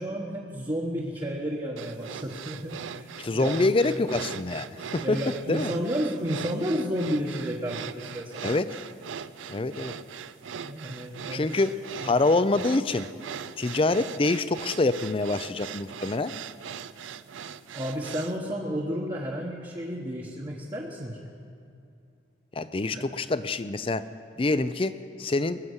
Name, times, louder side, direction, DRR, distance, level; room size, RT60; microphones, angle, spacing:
voice 1, 0.0-3.7 5.0-8.6 10.6-11.5 12.0-12.1 17.7-21.3 22.9-23.0, equal, 25° right, -2 dB, 1.1 m, -32 dB
sound 1, 1.8-18.4, right 7 dB, 80° right, 0.4 m, -40 dB
voice 2, 3.2-5.2 5.5-5.7 8.4-8.8 9.5-9.9 11.3-13.1 13.6-16.3 22.6-24.1 24.4-25.6, left 2 dB, 30° left, 13 dB, 0.4 m, -26 dB
21.0 x 7.3 x 8.0 m, 2.5 s
head